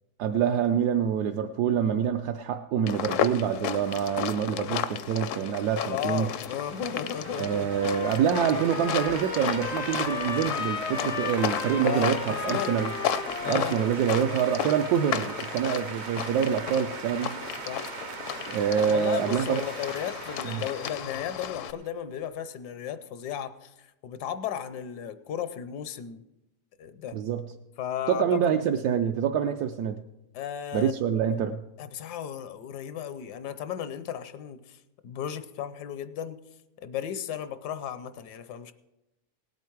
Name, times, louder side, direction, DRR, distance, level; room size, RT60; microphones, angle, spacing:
voice 1, 0.2-6.3 7.4-12.9 13.5-17.3 18.5-19.6 20.4-20.6 27.1-27.5 28.1-30.0 30.7-31.6, right 8 dB, 75° right, 4 dB, 1.1 m, -26 dB
sound 1, 2.9-21.7, left 9 dB, 65° left, 0.8 m, -34 dB
sound 2, 5.2-21.9, right 7 dB, 55° right, 0.8 m, -41 dB
voice 2, 5.9-7.7 11.6-12.8 13.4-13.9 17.7-17.9 18.9-26.2 26.8-27.2 27.8-28.5 30.3-30.9 31.8-36.4 36.8-38.7, left 9 dB, 80° left, 12 dB, 1.3 m, -35 dB
Trumpet, 7.1-15.5, left 6 dB, 50° left, 0.4 m, -36 dB
18.5 x 8.3 x 4.6 m, 0.93 s
omnidirectional pair, 1.7 m